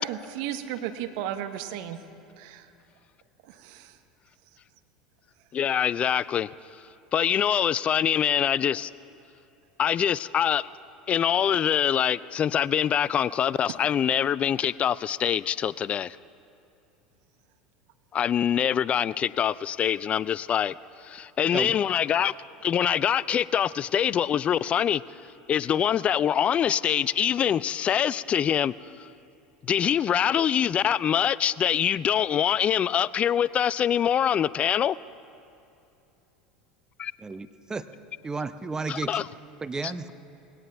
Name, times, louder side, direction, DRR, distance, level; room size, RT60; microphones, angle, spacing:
voice 1, 0.0-2.0 2.4-2.6 3.6-3.8, right 10 dB, 60° right, 9 dB, 1.0 m, -34 dB
voice 2, 5.5-6.5 7.1-8.9 9.8-10.7 11.1-16.2 18.1-20.7 21.0-22.3 22.6-25.0 25.5-28.7 29.0-29.1 29.6-35.0 37.0-37.1 38.9-39.3, left 9 dB, 35° left, 20 dB, 0.3 m, -24 dB
voice 3, 37.2-37.9 38.2-39.1 39.6-40.1, right 4 dB, 15° right, 11 dB, 0.7 m, -32 dB
20.0 x 17.5 x 3.5 m, 2.7 s
hypercardioid pair, 80°, 4 cm